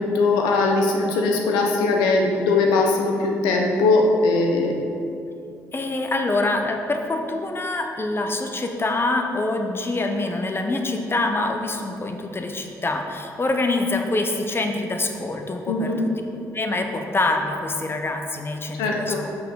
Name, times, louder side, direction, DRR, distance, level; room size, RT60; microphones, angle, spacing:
voice 1, 0.0-4.7 15.7-16.0 18.8-19.2, left 3 dB, 85° left, 1 dB, 1.0 m, -20 dB
voice 2, 5.7-16.1 16.5-19.3, left 2 dB, 30° left, 4 dB, 1.1 m, -25 dB
6.1 x 5.8 x 6.5 m, 2.5 s
supercardioid pair, 50°, 7 cm